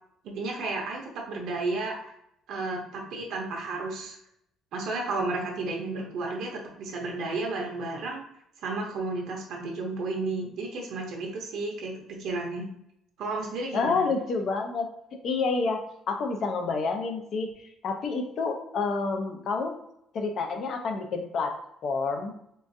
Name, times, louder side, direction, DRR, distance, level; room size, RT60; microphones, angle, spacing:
voice 1, 0.2-1.0 1.3-2.1 2.5-4.2 4.7-8.2 8.6-12.7 13.2-14.1, right 3 dB, 65° right, 0 dB, 0.8 m, -32 dB
voice 2, 13.7-14.9 15.2-19.8 20.1-22.3, left 4 dB, 50° left, 5 dB, 0.5 m, -29 dB
3.7 x 2.5 x 2.6 m, 0.76 s
cardioid pair, 150°, 0 cm